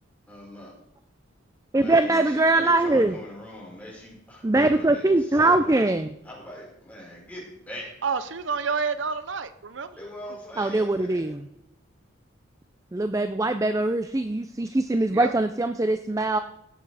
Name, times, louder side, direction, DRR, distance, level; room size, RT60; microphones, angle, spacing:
voice 1, 0.3-0.7 1.7-5.9 6.2-7.9 10.0-11.4, left 1 dB, 10° left, -4 dB, 5.6 m, -42 dB
voice 2, 1.7-3.1 4.4-6.1 10.6-11.4 12.9-16.4, right 2 dB, 15° right, 9 dB, 0.4 m, -22 dB
voice 3, 8.0-10.0 15.1-15.3, right 5 dB, 70° right, 13 dB, 0.6 m, -29 dB
17.0 x 8.0 x 4.9 m, 0.80 s
head